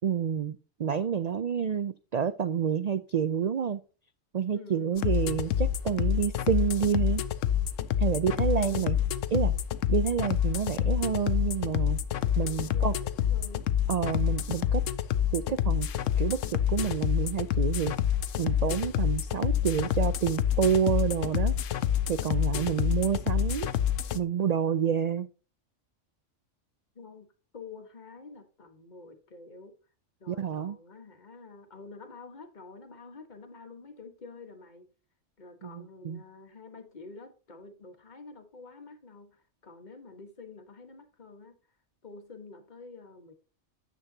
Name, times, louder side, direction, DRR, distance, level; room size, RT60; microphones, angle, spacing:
voice 1, 0.0-3.8 4.3-7.2 8.0-9.0 9.3-9.5 9.9-12.0 12.4-12.9 13.9-14.8 15.3-15.9 16.2-17.9 18.4-21.7 22.1-23.7 24.1-25.3 30.3-30.8 35.6-36.2, right 8 dB, 80° right, 0.3 m, -28 dB
voice 2, 4.5-4.9 8.1-8.9 12.4-13.6 26.9-27.3 27.5-29.7 30.2-34.9 35.4-41.6 42.0-43.3, left 4 dB, 35° left, 1.5 m, -48 dB
sound 1, 5.0-24.2, left 10 dB, 90° left, 1.0 m, -28 dB
9.9 x 7.7 x 2.8 m
omnidirectional pair, 1.3 m